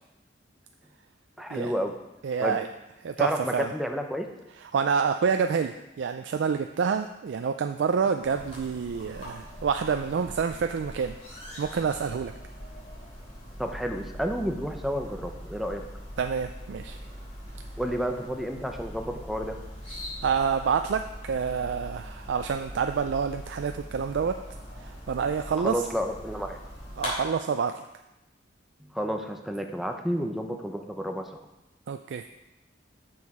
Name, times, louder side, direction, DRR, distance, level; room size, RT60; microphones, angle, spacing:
voice 1, 1.4-1.9 2.4-2.6 3.2-4.3 13.6-15.8 17.8-19.6 25.6-26.6 28.8-31.4, equal, ahead, 4 dB, 0.6 m, -30 dB
voice 2, 2.2-2.7 3.0-3.7 4.7-11.2 11.6-12.3 16.2-17.0 20.2-24.4 24.8-25.8 27.0-27.8 31.9-32.2, right 6 dB, 70° right, 7 dB, 0.3 m, -28 dB
sound 1, 8.2-27.1, equal, 35° left, 3.1 m, -42 dB
7.0 x 6.4 x 4.9 m, 0.95 s
head